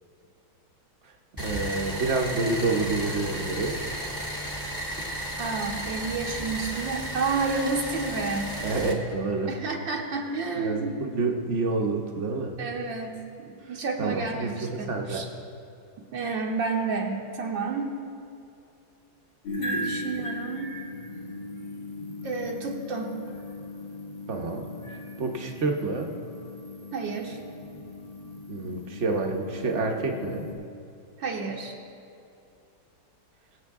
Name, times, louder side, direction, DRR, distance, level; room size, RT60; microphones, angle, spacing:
sound 1, 1.4-8.9, equal, 10° left, 1.2 m, -34 dB
voice 1, 1.4-3.8 8.6-9.6 10.6-12.6 14.0-15.3 24.3-24.7 25.2-26.1 28.5-30.5, right 3 dB, 45° right, 2 dB, 1.0 m, -28 dB
voice 2, 5.4-8.6 9.5-11.1 12.6-15.3 16.0-17.9 19.6-20.8 22.2-23.1 26.9-27.4 31.2-31.7, right 4 dB, 70° right, 0 dB, 1.6 m, -30 dB
sound 2, 19.4-30.5, left 1 dB, 65° left, 3.2 m, -38 dB
22.5 x 7.7 x 3.6 m, 2.6 s
omnidirectional pair, 2.2 m